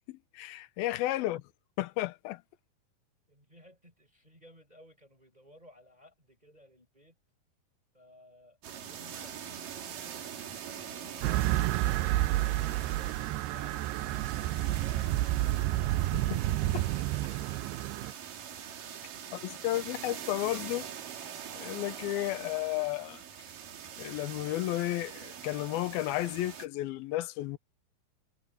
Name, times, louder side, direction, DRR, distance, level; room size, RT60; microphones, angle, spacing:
voice 1, 0.1-1.4 1.8-2.4 16.1-16.4 16.7-16.8 19.4-20.9 21.6-23.2 24.0-27.6, left 16 dB, 75° left, 2.6 m, -33 dB
voice 2, 3.3-7.2 7.9-10.2 10.7-15.7 18.9-19.6, left 1 dB, 10° right, 5.8 m, -57 dB
sound 1, 8.6-26.7, right 8 dB, 55° right, 3.6 m, -43 dB
sound 2, 11.2-18.1, right 16 dB, 85° right, 2.6 m, -30 dB
omnidirectional pair, 4.9 m